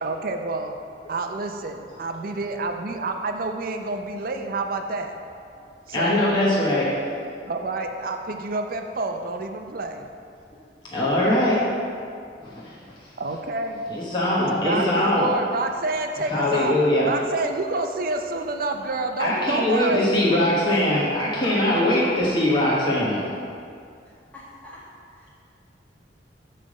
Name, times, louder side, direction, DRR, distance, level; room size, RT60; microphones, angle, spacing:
voice 1, 0.0-0.7 1.1-5.2 5.9-6.2 7.5-10.1 13.2-13.8 14.5-16.8 17.0-20.1, right 3 dB, 55° right, 5 dB, 0.5 m, -28 dB
voice 2, 5.9-6.9 10.9-11.6 12.4-12.7 13.9-15.3 16.3-17.1 19.2-23.2, left 1 dB, 25° left, -7 dB, 1.1 m, -21 dB
voice 3, 20.7-21.1 21.3-21.8 24.0-24.8 25.2-25.3, equal, 10° left, -8 dB, 1.6 m, -39 dB
7.7 x 3.3 x 6.4 m, 2.3 s
head